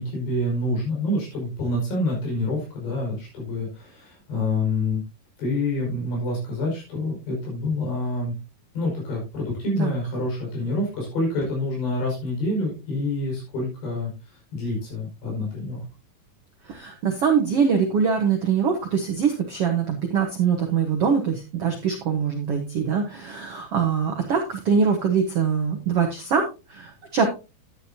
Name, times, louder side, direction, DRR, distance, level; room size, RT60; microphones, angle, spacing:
voice 1, 0.0-5.0 5.4-8.3 8.8-14.1 14.5-15.8, left 2 dB, 75° left, -3 dB, 7.6 m, -27 dB
voice 2, 16.7-27.3, right 6 dB, 85° right, 3 dB, 1.3 m, -23 dB
11.5 x 9.8 x 2.8 m, 0.29 s
omnidirectional pair, 4.8 m